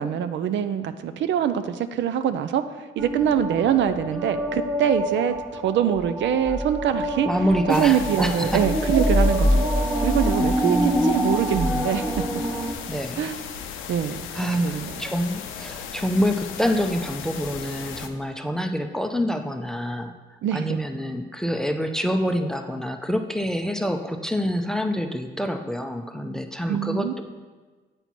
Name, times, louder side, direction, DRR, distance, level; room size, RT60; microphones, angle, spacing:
voice 1, 0.0-7.3 7.7-9.7 10.0-12.1 13.2-13.4 13.9-14.9 20.4-20.8 26.7-27.1, right 9 dB, 70° right, 10 dB, 0.4 m, -24 dB
sound 1, 3.0-12.7, equal, 15° right, 0.9 m, -25 dB
voice 2, 7.3-8.6 10.6-11.1 12.9-13.2 14.3-20.1 20.5-27.2, equal, 5° left, 6 dB, 0.5 m, -26 dB
sound 2, 7.7-18.1, left 7 dB, 90° left, 0.6 m, -36 dB
8.0 x 4.5 x 4.2 m, 1.3 s
cardioid pair, 90°, 20 cm